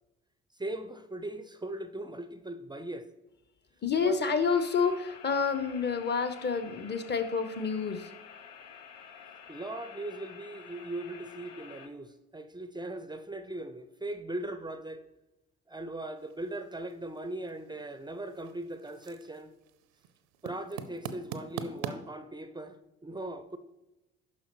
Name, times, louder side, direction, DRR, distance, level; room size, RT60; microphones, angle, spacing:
voice 1, 0.5-3.1 4.0-4.2 9.5-15.0 15.7-19.5 20.4-23.6, right 1 dB, 15° right, 0.6 m, -39 dB
voice 2, 3.8-8.1, left 5 dB, 30° left, 1.0 m, -29 dB
sound 1, 4.5-11.9, left 7 dB, 70° left, 0.8 m, -50 dB
sound 2, 16.2-21.9, right 8 dB, 70° right, 0.7 m, -44 dB
10.0 x 5.9 x 3.1 m
figure-of-eight pair, 50°, 34 cm